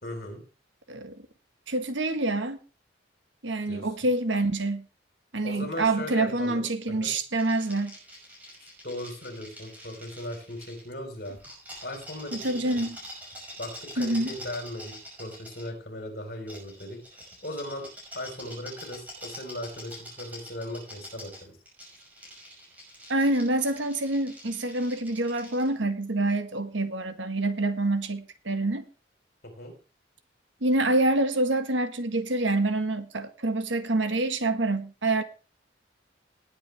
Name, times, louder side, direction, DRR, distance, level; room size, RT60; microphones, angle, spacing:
voice 1, 0.0-0.4 3.7-3.9 5.4-6.6 7.0-7.1 8.6-11.4 11.8-12.9 13.6-17.0 17.4-17.9 18.1-21.5 29.4-29.7, left 1 dB, 55° left, 4.4 m, -38 dB
voice 2, 0.9-1.2 1.7-2.6 3.4-4.9 5.3-8.0 12.3-13.0 14.0-14.4 23.1-28.8 30.6-35.2, right 2 dB, 80° right, 1.5 m, -26 dB
sound 1, 7.4-10.8 11.2-15.7 16.5-25.7, equal, 10° right, 6.0 m, -45 dB
19.5 x 8.4 x 3.4 m
head